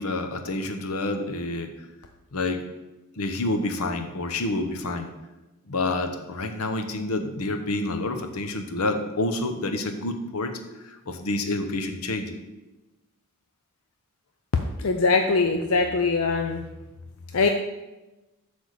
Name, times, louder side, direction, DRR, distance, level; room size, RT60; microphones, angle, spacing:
voice 1, 0.0-1.7 2.3-2.6 3.2-5.1 5.7-10.6 10.8-12.4, left 2 dB, 90° left, 7 dB, 0.8 m, -28 dB
voice 2, 14.8-16.6 17.3-17.5, left 4 dB, 70° left, 5 dB, 0.5 m, -22 dB
8.0 x 3.5 x 6.5 m, 1.1 s
head